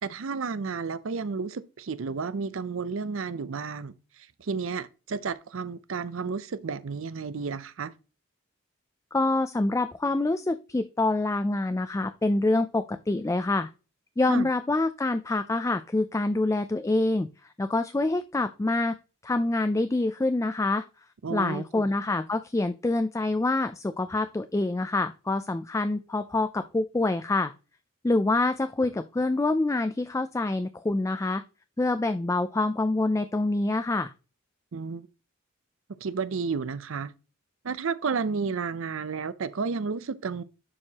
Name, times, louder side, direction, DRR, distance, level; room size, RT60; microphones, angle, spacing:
voice 1, 0.0-7.9 14.3-14.5 21.2-21.9 34.7-35.1 36.0-37.1 37.6-40.4, right 5 dB, 75° right, 0.6 m, -32 dB
voice 2, 9.1-13.7 14.2-18.9 19.2-20.8 21.3-27.5 28.0-31.4 31.8-34.1, left 2 dB, 15° left, 0.3 m, -26 dB
11.0 x 4.7 x 2.9 m
head